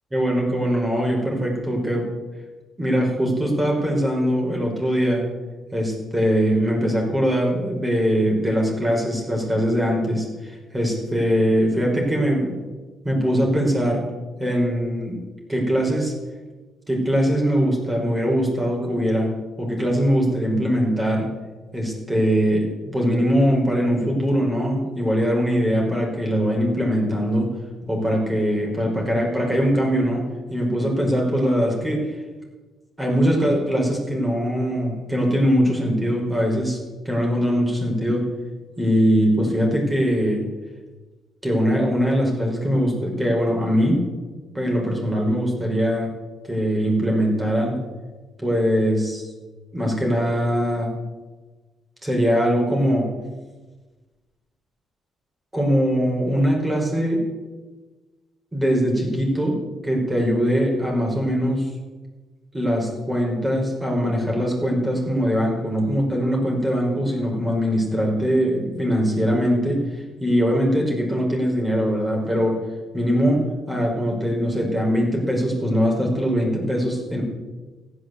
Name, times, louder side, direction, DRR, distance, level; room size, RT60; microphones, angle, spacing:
voice 1, 0.1-2.1 2.8-5.3 5.7-12.5 13.0-14.0 14.4-15.2 15.5-16.1 16.9-19.3 19.6-21.3 21.7-27.5 27.9-30.2 30.5-32.0 33.0-36.8 37.1-38.2 38.8-40.4 41.4-44.0 44.5-46.1 46.5-47.8 48.4-49.2 49.7-50.9 52.0-53.1 55.5-57.2 58.5-59.6 59.8-61.7 62.5-69.8 70.2-72.6 72.9-73.4 73.7-77.2, equal, 15° right, -1 dB, 5.4 m, -21 dB
15.0 x 9.9 x 8.0 m, 1.3 s
cardioid pair, 90°, 0 cm